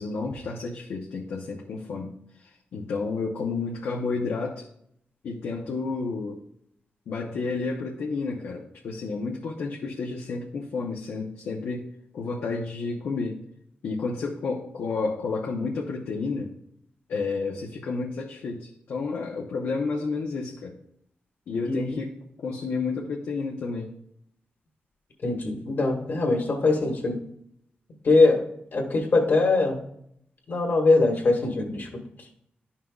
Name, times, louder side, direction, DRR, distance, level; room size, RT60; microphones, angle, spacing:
voice 1, 0.0-2.1 2.7-4.6 5.2-6.4 7.1-11.8 12.1-13.4 13.8-16.5 17.1-20.7 21.5-22.1 22.4-23.9, left 4 dB, 90° left, -2 dB, 0.8 m, -31 dB
voice 2, 25.2-27.2 28.1-28.4 28.7-29.8 30.5-31.9, left 3 dB, 60° left, 2 dB, 1.6 m, -22 dB
11.0 x 5.7 x 2.4 m, 0.72 s
cardioid pair, 90°, 4 cm